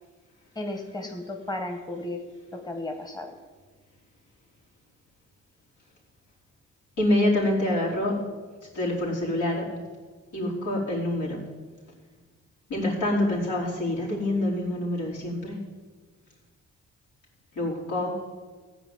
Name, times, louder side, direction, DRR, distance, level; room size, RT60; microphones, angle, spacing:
voice 1, 0.5-2.2 2.5-3.3, left 2 dB, 15° left, 4 dB, 1.5 m, -34 dB
voice 2, 7.0-8.2 8.7-9.7 10.3-11.5 12.7-15.6 17.5-18.1, left 1 dB, 80° left, -5 dB, 4.7 m, -26 dB
15.0 x 5.1 x 9.5 m, 1.4 s
cardioid pair, 90°, 30 cm